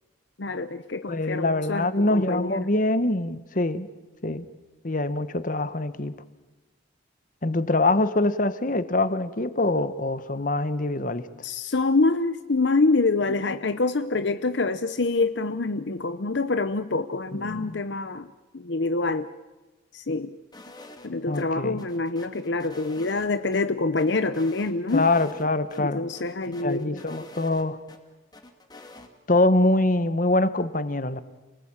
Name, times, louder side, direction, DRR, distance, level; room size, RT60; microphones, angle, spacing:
voice 1, 0.4-2.7 11.4-18.3 18.5-19.3 19.9-20.3 21.0-25.1 25.8-27.0, left 3 dB, 65° left, 0.8 m, -26 dB
voice 2, 1.1-3.9 4.2-4.5 4.8-6.2 7.4-11.3 17.3-17.8 21.3-21.8 24.9-26.0 26.6-27.8 29.3-31.2, left 2 dB, 45° left, 1.2 m, -24 dB
sound 1, 20.5-21.5 21.8-23.6 24.0-25.5 25.7-25.8 26.1-28.0 28.3-29.1, left 2 dB, 20° left, 2.3 m, -47 dB
28.5 x 19.5 x 8.9 m
head